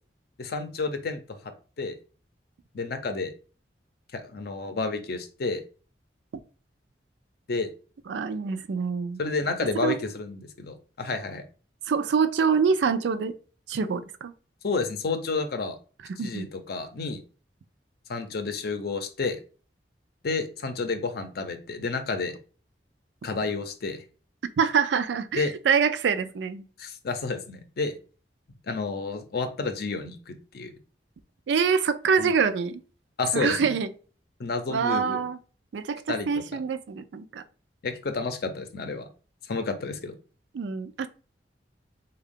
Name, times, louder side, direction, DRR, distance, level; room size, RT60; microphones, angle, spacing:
voice 1, 0.4-1.5 1.8-2.0 2.7-3.3 4.1-5.6 7.5-7.7 9.2-11.4 14.6-15.8 16.2-17.2 18.1-19.4 20.2-22.4 23.2-24.0 25.3-25.5 26.8-28.0 28.7-30.7 32.2-32.3 33.2-33.6 34.4-35.3 36.1-36.4 37.8-39.1 39.5-40.2, left 3 dB, 60° left, 0.6 m, -30 dB
voice 2, 8.1-9.2 9.8-10.0 11.9-13.3 13.7-14.3 16.2-16.4 24.6-26.6 31.5-32.8 33.3-33.9 34.7-35.4 35.7-37.4 40.5-41.1, right 6 dB, 85° right, 0.4 m, -25 dB
3.5 x 2.3 x 3.6 m
head